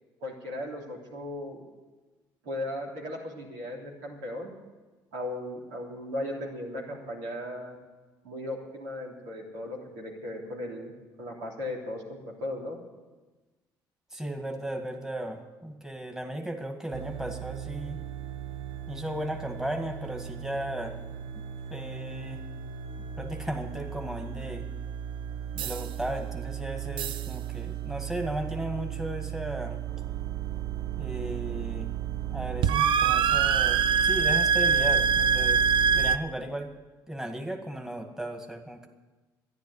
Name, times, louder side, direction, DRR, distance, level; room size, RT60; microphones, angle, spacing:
voice 1, 0.2-1.7 2.4-4.5 5.1-7.8 8.2-10.9 11.2-12.8, left 1 dB, 90° right, -3 dB, 3.5 m, -37 dB
voice 2, 14.1-18.0 18.9-20.9 21.7-22.4 23.2-24.6 25.5-29.8 31.0-31.9 32.3-35.7 35.9-36.7 37.1-38.9, right 1 dB, 5° right, 4 dB, 2.0 m, -35 dB
sound 1, 16.9-36.2, right 7 dB, 70° right, 0.6 m, -29 dB
11.5 x 10.5 x 9.7 m, 1.2 s
supercardioid pair, 65°, 9 cm